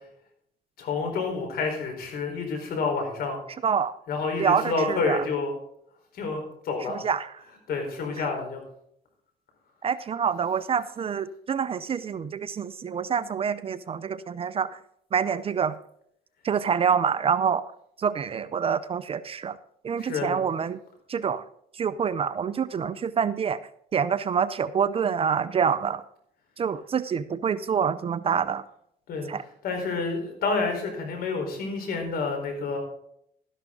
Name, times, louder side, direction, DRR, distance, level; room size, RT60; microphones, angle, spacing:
voice 1, 0.8-3.4 4.1-5.6 6.1-7.0 7.7-8.6 20.0-20.4 29.1-29.3 29.6-32.8, left 4 dB, 65° left, 3 dB, 4.3 m, -29 dB
voice 2, 3.6-3.9 4.4-5.2 6.9-7.3 9.8-14.8 15.1-15.7 16.4-17.7 18.0-19.6 19.8-20.8 21.1-21.4 21.8-23.6 23.9-26.0 26.6-28.6 29.3-29.4, right 7 dB, 35° right, 15 dB, 0.5 m, -26 dB
13.0 x 11.0 x 3.8 m, 0.71 s
cardioid pair, 110°, 17 cm